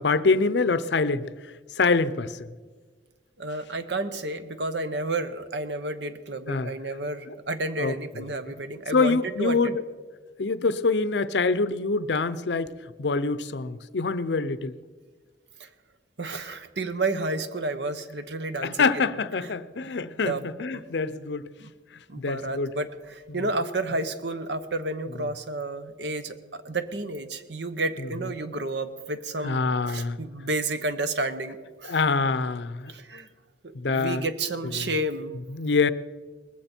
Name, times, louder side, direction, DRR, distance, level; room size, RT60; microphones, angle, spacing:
voice 1, 0.0-2.5 6.5-6.7 7.3-7.4 7.8-8.3 8.9-9.8 10.4-14.8 18.6-21.5 22.2-22.7 23.3-23.4 28.0-28.1 29.4-30.2 31.8-32.9 33.7-34.3 34.6-34.9 35.5-35.9, left 4 dB, 65° left, 0.6 m, -25 dB
voice 2, 3.4-9.8 15.6-15.7 16.2-19.2 20.2-20.5 20.7-20.8 21.6-21.7 22.1-31.9 32.9-33.3 33.6-35.4, right 2 dB, 65° right, 1.0 m, -31 dB
19.5 x 15.0 x 4.4 m
head